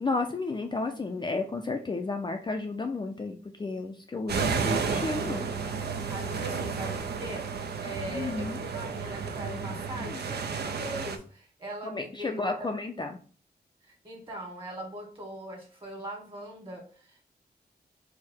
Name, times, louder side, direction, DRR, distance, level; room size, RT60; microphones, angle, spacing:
voice 1, 0.0-5.5 8.1-8.6 10.0-10.2 11.8-13.2, left 3 dB, 25° left, 4 dB, 0.4 m, -32 dB
sound 1, 4.3-11.2, right 5 dB, 75° right, 0.5 m, -32 dB
voice 2, 6.1-12.7 13.9-17.2, right 1 dB, 30° right, -1 dB, 1.6 m, -41 dB
4.6 x 2.1 x 4.4 m, 0.41 s
wide cardioid pair, 125°, 17 cm